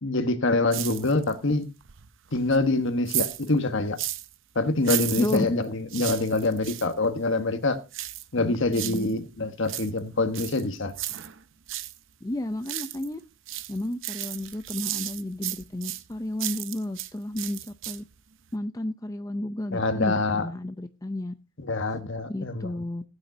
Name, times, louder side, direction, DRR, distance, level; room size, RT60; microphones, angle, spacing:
voice 1, 0.0-1.7 2.3-4.0 4.5-7.8 8.3-10.9 19.7-20.5 21.6-22.8, left 2 dB, 60° left, 1.3 m, -25 dB
sound 1, 0.7-1.4 1.8-4.4 4.8-6.9 7.9-9.1 9.5-12.0 12.3-13.2 13.5-17.1 17.4-18.2 18.5-18.6, right 14 dB, 60° right, 0.7 m, -34 dB
voice 2, 5.2-5.5 8.4-9.2 12.2-13.2 13.7-18.0 18.5-21.3 22.3-23.0, left 1 dB, 15° left, 0.5 m, -32 dB
16.5 x 8.9 x 2.7 m
head